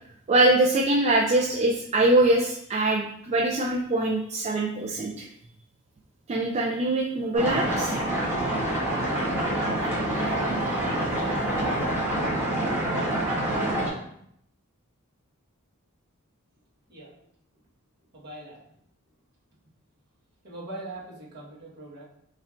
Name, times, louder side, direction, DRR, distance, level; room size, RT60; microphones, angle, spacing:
voice 1, 0.3-5.3 6.3-7.9, right 2 dB, 30° right, -1 dB, 0.3 m, -23 dB
sound 1, 7.3-13.9, right 1 dB, 10° right, 1.2 m, -26 dB
voice 2, 18.1-18.6 20.4-22.0, right 2 dB, 50° right, -6 dB, 1.4 m, -41 dB
4.3 x 3.2 x 2.5 m, 0.72 s
head